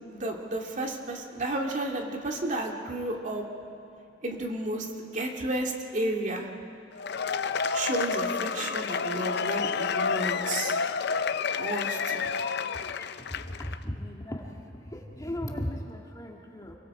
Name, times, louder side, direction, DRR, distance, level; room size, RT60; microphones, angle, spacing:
voice 1, 0.1-3.5 4.2-6.5 7.7-10.8 11.6-12.3, right 1 dB, 40° right, 1 dB, 2.3 m, -32 dB
Cheering / Applause / Crowd, 6.9-13.8, left 5 dB, 60° left, 0.6 m, -30 dB
voice 2, 10.4-10.9 12.7-16.8, left 1 dB, 20° left, 0 dB, 1.8 m, -38 dB
29.0 x 23.0 x 4.9 m, 2.8 s
head